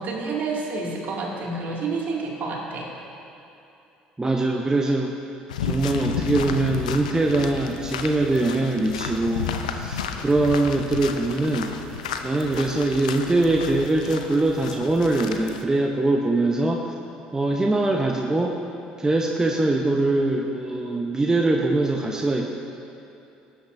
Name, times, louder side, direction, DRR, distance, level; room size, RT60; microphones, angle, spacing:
voice 1, 0.0-2.9, right 3 dB, 50° right, -3 dB, 2.4 m, -29 dB
voice 2, 4.2-5.2 5.6-11.7 12.2-16.9 17.3-18.6 19.0-22.5, right 2 dB, 15° right, 1 dB, 0.9 m, -22 dB
sound 1, 5.5-15.6, left 6 dB, 80° left, 0.5 m, -32 dB
18.0 x 8.8 x 2.7 m, 2.8 s
hypercardioid pair, 60°, 4 cm